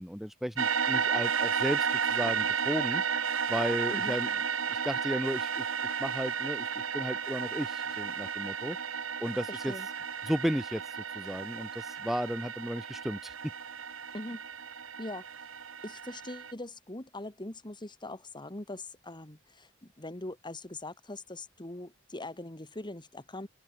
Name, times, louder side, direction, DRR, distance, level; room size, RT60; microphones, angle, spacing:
voice 1, 0.0-3.0 3.5-4.3 4.7-8.8 9.2-9.7 10.2-13.3, equal, ahead, 1.2 m, -34 dB
sound 1, 0.6-16.5, right 6 dB, 85° right, 2.0 m, -33 dB
voice 2, 9.5-9.9 14.1-14.4 15.0-15.2 15.8-23.5, left 2 dB, 25° left, 2.5 m, -42 dB
open air
head